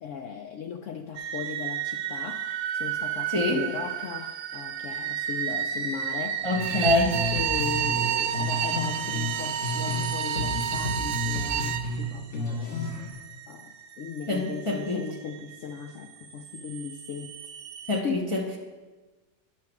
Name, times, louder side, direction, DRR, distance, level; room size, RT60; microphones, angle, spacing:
voice 1, 0.0-6.5 7.3-12.9 13.5-17.4 17.9-18.3, left 6 dB, 75° left, 5 dB, 0.7 m, -37 dB
sound 1, 1.1-18.0, right 9 dB, 60° right, 1.0 m, -36 dB
voice 2, 3.3-3.7 6.4-7.3 14.3-15.0 17.9-18.6, left 2 dB, 25° left, -1 dB, 0.7 m, -26 dB
Bowed string instrument, 6.5-11.9, right 10 dB, 80° right, 1.2 m, -29 dB
sound 2, 6.6-10.1 10.4-13.1, left 2 dB, 45° left, 1.6 m, -32 dB
9.7 x 6.0 x 5.9 m, 1.2 s
omnidirectional pair, 1.8 m